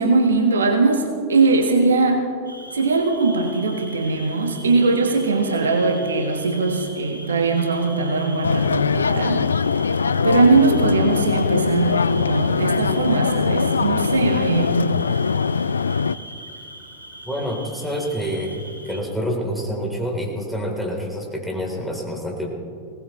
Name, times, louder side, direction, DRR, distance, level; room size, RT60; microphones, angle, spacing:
voice 1, 0.0-2.2 2.7-9.4 10.2-15.0, right 3 dB, 70° right, 5 dB, 1.4 m, -20 dB
Cricket, 2.4-19.0, equal, 85° right, 3.6 m, -40 dB
sound 1, 8.4-16.2, left 5 dB, 75° left, 0.3 m, -21 dB
voice 2, 17.2-22.5, equal, ahead, -1 dB, 3.5 m, -27 dB
21.5 x 18.5 x 3.2 m, 2.3 s
figure-of-eight pair, 90°, 0 cm